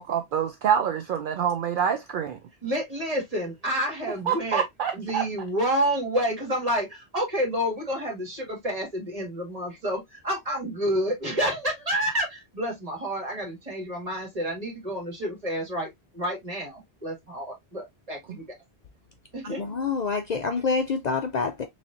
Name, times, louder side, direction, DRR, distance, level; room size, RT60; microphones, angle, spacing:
voice 1, 0.0-2.4 4.3-5.2, right 8 dB, 60° right, 0.6 m, -26 dB
voice 2, 2.6-4.6 4.9-18.4 19.3-19.6, equal, 35° right, 1.8 m, -29 dB
voice 3, 19.5-21.6, left 4 dB, 55° left, 0.5 m, -27 dB
4.1 x 3.2 x 2.5 m
omnidirectional pair, 1.1 m